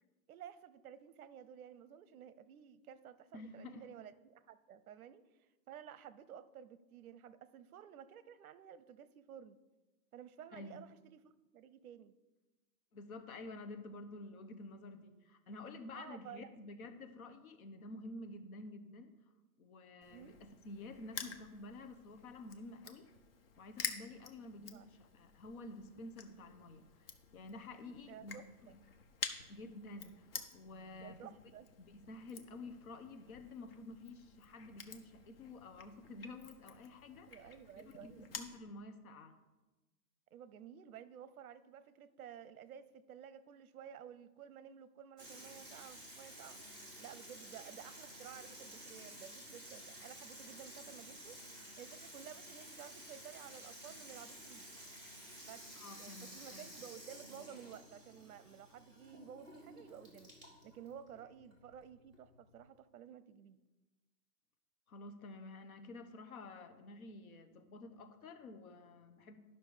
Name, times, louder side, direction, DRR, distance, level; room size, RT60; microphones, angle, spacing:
voice 1, 0.3-9.6 10.1-12.1 15.9-16.5 20.1-20.4 24.6-24.9 28.0-28.8 31.0-31.7 37.2-38.3 40.3-46.6 47.0-51.4 51.8-54.7 55.5-55.6 56.0-60.3 60.6-63.6, right 9 dB, 65° right, 15 dB, 0.7 m, -53 dB
voice 2, 3.3-3.8 10.5-10.8 12.9-19.1 19.6-23.1 23.6-28.4 29.5-31.3 31.8-37.5 38.0-39.4 55.7-56.7 64.9-69.4, left 2 dB, 65° left, 8 dB, 1.1 m, -50 dB
Crushing, 20.0-38.6, left 6 dB, 40° left, 0.7 m, -50 dB
Water tap faucet / Sink (filling or washing), 45.2-62.7, right 1 dB, 10° left, 1.7 m, -53 dB
11.0 x 5.9 x 4.9 m, 1.1 s
hypercardioid pair, 175°, 47 cm